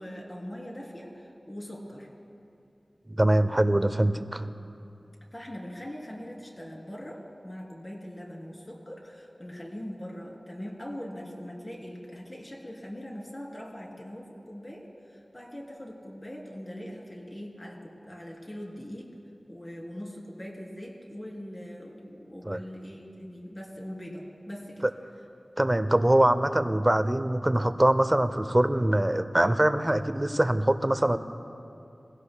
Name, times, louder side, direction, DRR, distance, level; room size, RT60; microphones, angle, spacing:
voice 1, 0.0-2.1 5.3-19.1 19.5-24.9, equal, 30° left, -2 dB, 3.1 m, -41 dB
voice 2, 3.1-4.5 22.5-22.6 25.6-31.2, right 1 dB, 25° right, 11 dB, 0.6 m, -23 dB
22.5 x 16.5 x 2.3 m, 2.6 s
wide cardioid pair, 55°, 0 cm